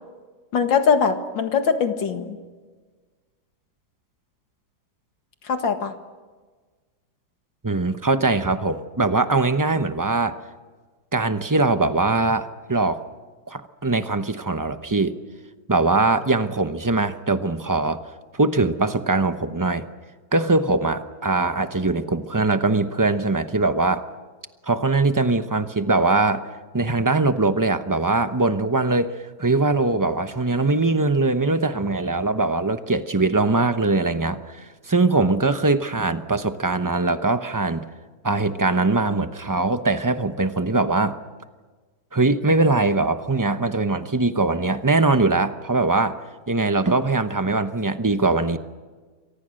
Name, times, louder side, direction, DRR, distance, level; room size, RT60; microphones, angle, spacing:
voice 1, 0.5-2.4 5.5-5.9, left 6 dB, 75° left, 6 dB, 2.5 m, -21 dB
voice 2, 7.6-10.4 11.1-13.0 13.5-15.1 15.7-18.0 18.3-19.9 20.3-24.1 24.6-26.4 26.7-37.8 38.2-41.2 42.1-46.2 46.5-48.6, right 3 dB, 25° right, 9 dB, 0.4 m, -21 dB
28.5 x 24.0 x 6.5 m, 1.4 s
omnidirectional pair, 2.1 m